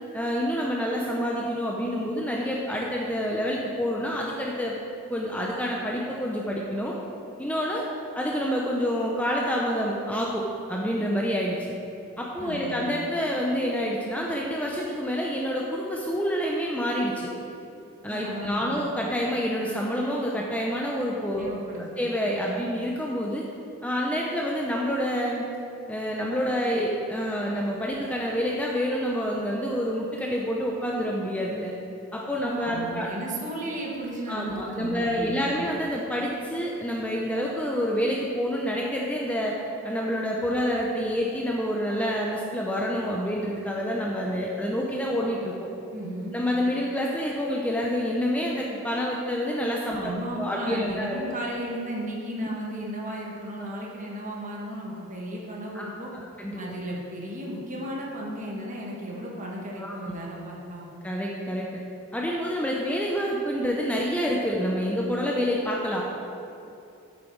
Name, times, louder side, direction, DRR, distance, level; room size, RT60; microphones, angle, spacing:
voice 1, 0.1-4.7 5.1-7.0 7.4-7.8 8.1-11.7 12.2-17.3 18.0-21.5 21.8-23.4 23.8-25.4 25.9-31.7 32.1-33.1 34.3-39.5 39.8-45.7 46.3-51.2 52.4-52.5 55.7-56.6 59.8-59.9 61.0-61.7 62.1-66.0, equal, 5° left, -2 dB, 0.6 m, -28 dB
voice 2, 12.4-12.9 18.1-18.9 21.3-22.0 32.4-35.7 45.9-46.4 49.9-56.1 56.6-60.9, right 1 dB, 35° right, -3 dB, 1.5 m, -35 dB
9.0 x 7.8 x 4.6 m, 2.7 s
head